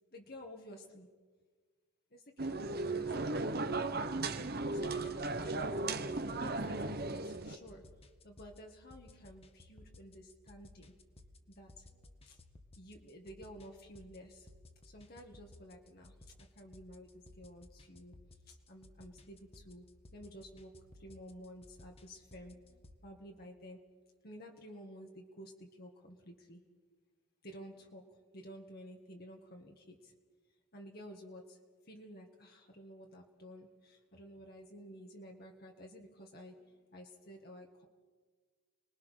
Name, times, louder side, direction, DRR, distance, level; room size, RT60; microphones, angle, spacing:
voice 1, 0.1-1.1 2.1-3.9 4.7-7.8 8.2-10.9 11.5-12.4 12.8-14.5 14.8-18.1 18.4-19.9 20.1-23.8 24.2-26.6 27.4-30.1 30.5-37.9, equal, 45° left, 1 dB, 1.9 m, -52 dB
sound 1, 2.4-7.6, right 3 dB, 45° right, 1.3 m, -36 dB
sound 2, 4.5-23.0, left 2 dB, 25° left, 1.5 m, -59 dB
30.0 x 21.0 x 6.6 m, 1.5 s
head